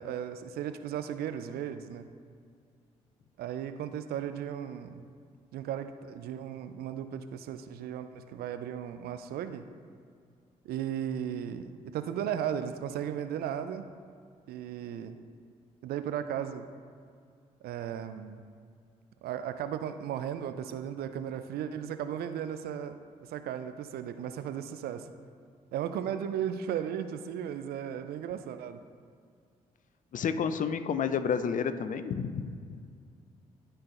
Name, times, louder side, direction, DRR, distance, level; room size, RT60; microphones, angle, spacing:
voice 1, 0.0-2.1 3.4-5.0 5.5-9.6 10.6-13.8 14.5-15.2 15.8-16.6 17.6-18.4 19.2-22.9 23.3-25.1 25.7-28.8, right 9 dB, 60° right, 10 dB, 0.5 m, -35 dB
voice 2, 30.1-32.8, left 6 dB, 45° left, 11 dB, 0.5 m, -30 dB
13.0 x 4.5 x 2.6 m, 2.2 s
hypercardioid pair, 40°, 18 cm